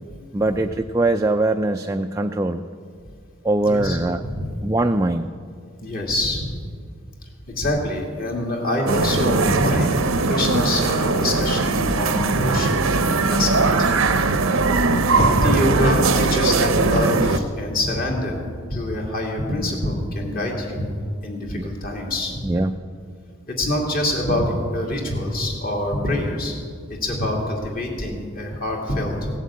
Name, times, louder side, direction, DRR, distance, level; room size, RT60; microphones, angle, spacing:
voice 1, 0.3-2.6 3.4-4.2 4.6-5.3 21.6-21.7 22.4-22.8, right 2 dB, 15° right, 4 dB, 0.3 m, -22 dB
voice 2, 3.6-4.0 4.2-4.5 5.8-6.6 7.5-12.8 13.3-14.0 15.1-18.4 18.7-20.8 21.2-22.4 23.5-26.6 26.9-29.3, left 1 dB, 45° left, -1 dB, 2.6 m, -25 dB
sound 1, 8.9-17.4, right 3 dB, 75° right, 0.7 m, -20 dB
16.5 x 7.7 x 8.5 m, 2.1 s
head